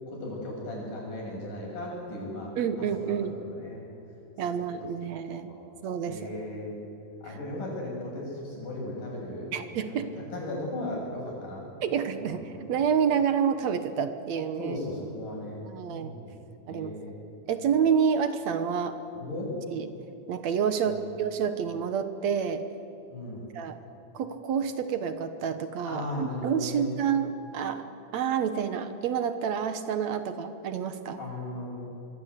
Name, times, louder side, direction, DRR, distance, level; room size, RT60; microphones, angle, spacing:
voice 1, 0.1-2.5 2.8-3.8 4.6-4.7 5.5-5.8 6.1-6.9 7.2-9.5 9.9-11.9 12.2-12.4 14.6-17.2 19.1-19.5 20.8-21.0 23.1-23.5 25.9-26.9 31.2-31.8, left 1 dB, 90° left, -2 dB, 9.0 m, -37 dB
voice 2, 2.6-3.4 4.4-5.5 5.8-6.2 7.3-7.4 9.5-10.1 11.8-14.8 15.7-16.1 16.7-16.9 17.5-19.0 19.7-19.9 20.3-22.6 23.5-23.8 24.1-27.9 28.1-31.2, right 7 dB, 65° right, 10 dB, 2.3 m, -28 dB
26.0 x 23.0 x 8.4 m, 2.8 s
omnidirectional pair, 3.6 m